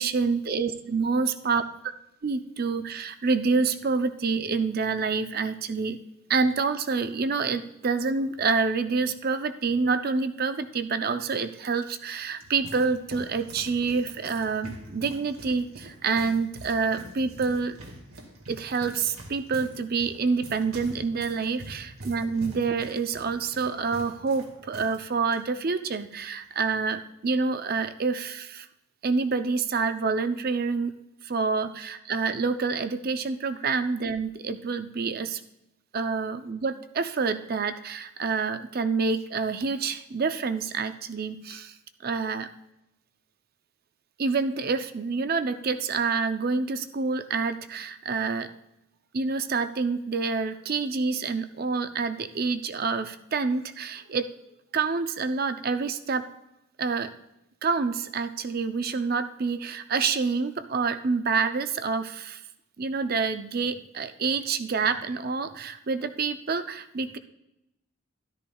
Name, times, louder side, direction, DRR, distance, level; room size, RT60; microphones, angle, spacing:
voice 1, 0.0-1.6 2.2-6.0 6.3-17.8 18.5-28.7 29.0-31.0 31.2-35.4 35.9-41.8 42.0-42.5 44.2-48.5 49.1-54.3 54.7-56.3 56.8-57.1 57.6-62.4 62.8-67.2, right 4 dB, 45° right, 10 dB, 0.5 m, -27 dB
sound 1, 12.1-25.0 25.2-25.4 26.1-26.4, right 1 dB, 85° right, 1.9 m, -45 dB
13.0 x 12.5 x 2.3 m, 0.89 s
head